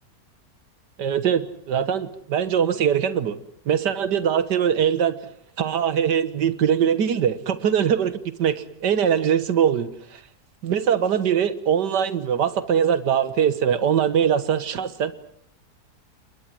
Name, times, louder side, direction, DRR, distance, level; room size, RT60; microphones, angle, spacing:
voice 1, 1.0-3.4 3.7-5.2 5.6-10.2 10.6-15.1, right 8 dB, 90° right, 13 dB, 1.9 m, -22 dB
29.0 x 21.5 x 7.6 m, 0.64 s
omnidirectional pair, 1.8 m